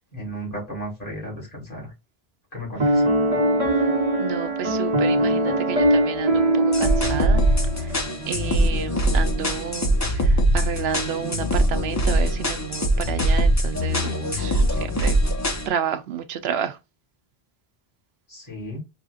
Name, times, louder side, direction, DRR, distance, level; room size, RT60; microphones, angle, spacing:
voice 1, 0.1-1.9 2.5-3.0 18.3-18.8, equal, 40° left, 2.8 m, -34 dB
Piano, 2.8-8.1, right 1 dB, 35° right, 1.2 m, -21 dB
voice 2, 4.2-7.5 7.8-7.9 8.3-15.2 15.7-16.8, right 7 dB, 85° right, 0.9 m, -30 dB
sound 1, 6.7-15.7, equal, 20° left, 0.6 m, -22 dB
4.8 x 2.6 x 2.3 m
omnidirectional pair, 1.0 m